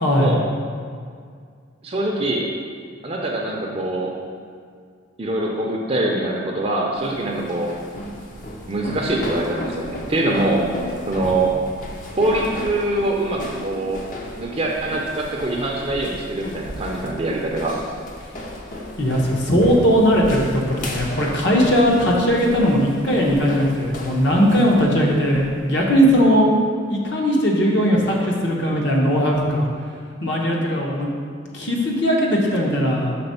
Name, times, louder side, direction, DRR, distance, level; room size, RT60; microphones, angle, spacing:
voice 1, 0.0-0.3 19.0-26.5 26.9-29.7 30.2-31.1 31.5-33.1, equal, 55° left, -2 dB, 1.0 m, -18 dB
voice 2, 1.8-2.5 3.0-4.1 5.2-7.7 8.7-10.6 11.1-11.6 12.2-14.0 14.4-17.8, right 2 dB, 30° right, -1 dB, 0.5 m, -23 dB
sound 1, 7.0-26.2, left 1 dB, 40° left, 0.6 m, -35 dB
5.9 x 3.6 x 5.5 m, 2.1 s
head